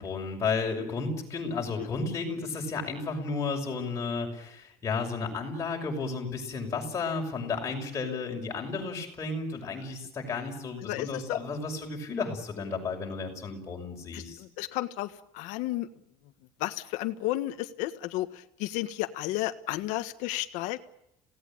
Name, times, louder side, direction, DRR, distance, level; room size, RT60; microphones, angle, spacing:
voice 1, 0.0-14.4, left 4 dB, 25° left, 1 dB, 6.2 m, -33 dB
voice 2, 10.8-11.4 14.1-15.9 16.6-20.9, left 16 dB, 85° left, 8 dB, 1.5 m, -33 dB
27.5 x 18.0 x 8.9 m, 0.81 s
cardioid pair, 180°, 12 cm